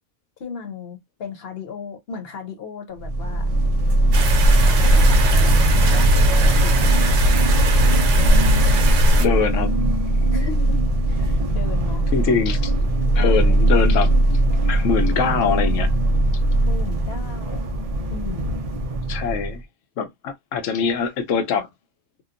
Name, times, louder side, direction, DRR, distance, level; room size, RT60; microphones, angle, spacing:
voice 1, 0.4-3.5 4.6-7.2 10.3-12.1 13.0-13.6 16.6-17.6 18.1-18.6, left 5 dB, 60° left, 0.9 m, -36 dB
sound 1, 3.0-19.6, right 1 dB, 55° right, 0.4 m, -19 dB
sound 2, 4.1-9.3, equal, 85° right, 1.0 m, -19 dB
voice 2, 9.2-9.7 12.1-12.7 13.2-14.4 14.6-15.9 19.1-19.6 20.0-21.7, left 6 dB, 85° left, 1.0 m, -23 dB
2.8 x 2.0 x 2.4 m
omnidirectional pair, 1.3 m